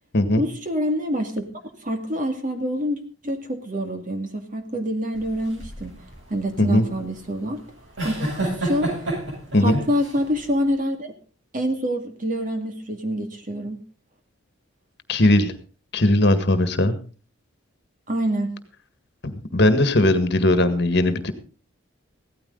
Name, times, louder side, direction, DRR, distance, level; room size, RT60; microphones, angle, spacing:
voice 1, 0.4-1.4 1.8-5.9 6.3-7.6 8.0-8.9 9.6-11.1 11.5-13.8 18.1-18.5, equal, 40° right, 5 dB, 2.2 m, -26 dB
sound 1, 5.1-10.7, right 1 dB, 60° right, 7.6 m, -30 dB
voice 2, 9.5-9.9 15.1-15.5 15.9-16.9 19.2-21.3, left 1 dB, 50° left, 10 dB, 1.7 m, -19 dB
16.5 x 13.5 x 3.9 m, 0.37 s
head